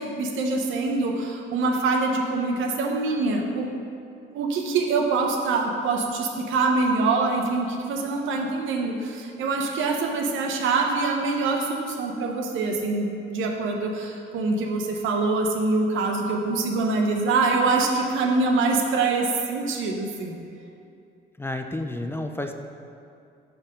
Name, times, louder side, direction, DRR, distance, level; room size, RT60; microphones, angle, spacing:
voice 1, 0.0-3.7 4.3-20.3, right 3 dB, 85° right, 2 dB, 0.8 m, -24 dB
voice 2, 21.4-22.5, left 1 dB, 10° left, 5 dB, 0.4 m, -30 dB
5.6 x 4.3 x 5.2 m, 2.5 s
cardioid pair, 90°, 20 cm